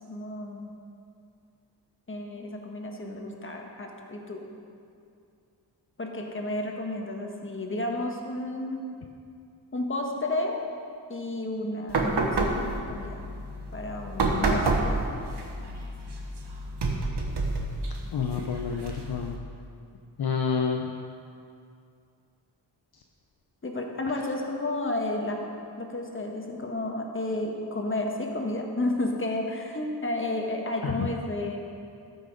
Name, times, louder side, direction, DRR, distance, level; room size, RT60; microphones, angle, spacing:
voice 1, 0.1-0.7 2.1-4.5 6.0-8.9 9.7-10.7 11.1-13.3 13.7-14.9 23.6-31.6, left 2 dB, 25° left, 1 dB, 1.4 m, -32 dB
sound 1, 11.9-19.4, right 2 dB, 65° right, 1.4 m, -29 dB
voice 2, 18.1-19.4 20.2-20.8 30.8-30.9, left 6 dB, 55° left, 3 dB, 0.7 m, -28 dB
13.5 x 6.2 x 5.2 m, 2.4 s
wide cardioid pair, 85°, 44 cm